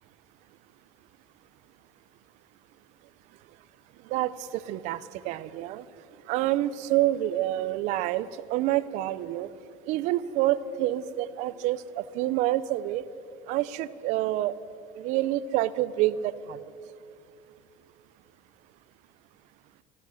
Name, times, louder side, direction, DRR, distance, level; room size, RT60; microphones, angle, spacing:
voice 1, 4.1-5.8 6.3-9.5 9.9-13.0 13.5-14.5 15.0-16.6, right 14 dB, 55° right, 15 dB, 0.6 m, -27 dB
16.5 x 14.0 x 6.4 m, 2.5 s
cardioid pair, 165°, 14 cm